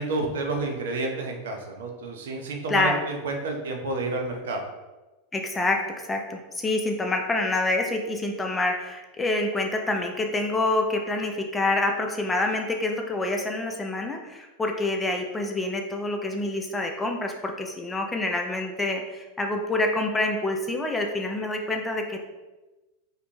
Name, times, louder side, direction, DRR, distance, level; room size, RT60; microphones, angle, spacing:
voice 1, 0.0-4.7, right 3 dB, 70° right, 3 dB, 0.5 m, -30 dB
voice 2, 2.7-3.0 5.3-22.2, left 2 dB, 15° left, 3 dB, 0.4 m, -27 dB
2.5 x 2.1 x 3.1 m, 1.1 s
hypercardioid pair, 90°, 0 cm